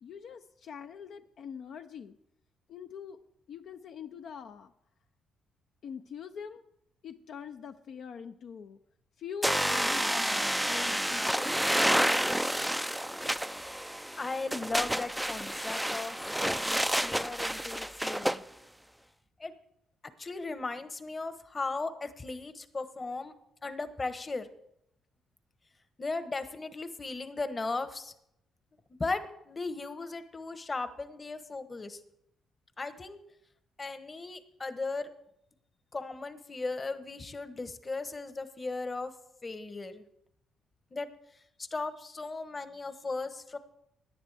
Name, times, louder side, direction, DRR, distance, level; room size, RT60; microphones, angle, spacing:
voice 1, 0.0-2.2 2.7-3.2 3.5-4.7 5.8-6.6 7.0-8.8 9.2-11.5, left 7 dB, 65° left, 7 dB, 0.6 m, -43 dB
sound 1, 9.4-18.4, equal, 5° right, 0.4 m, -29 dB
voice 2, 14.2-16.2 16.4-18.4 19.4-19.5 20.2-23.3 23.6-24.5 26.0-28.1 29.0-32.0 32.8-33.2 33.8-35.1 35.9-39.1 39.4-40.0 40.9-41.1 41.6-43.6, left 3 dB, 30° left, 11 dB, 1.1 m, -37 dB
17.5 x 10.0 x 3.4 m, 0.77 s
cardioid pair, 90°, 0 cm